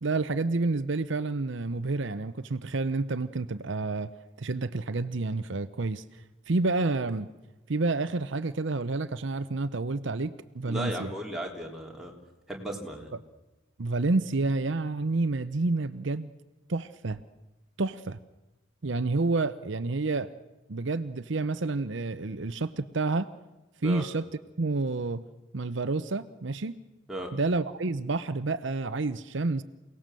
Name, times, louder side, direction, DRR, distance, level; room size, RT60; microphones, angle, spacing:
voice 1, 0.0-6.0 6.5-7.3 7.7-11.1 13.8-16.3 16.7-17.2 17.8-18.2 18.8-20.3 20.7-23.3 23.8-24.3 24.6-25.2 25.5-26.8 27.3-29.6, right 3 dB, 65° right, 12 dB, 0.7 m, -29 dB
voice 2, 10.7-12.1 12.5-13.1 23.8-24.0 27.1-27.3, right 1 dB, ahead, -1 dB, 3.2 m, -35 dB
28.0 x 18.5 x 7.6 m, 1.1 s
head